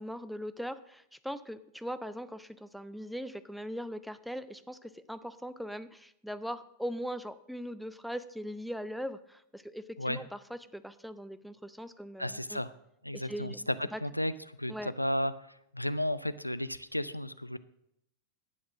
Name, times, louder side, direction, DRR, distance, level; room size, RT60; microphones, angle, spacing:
voice 1, 0.0-12.6 13.1-14.0 14.7-14.9, equal, ahead, 13 dB, 0.6 m, -40 dB
voice 2, 12.2-12.7 13.0-13.7 14.0-15.3 15.7-17.6, left 1 dB, 90° left, 15 dB, 0.5 m, -33 dB
11.0 x 8.7 x 6.2 m, 0.77 s
figure-of-eight pair, 90°, 0 cm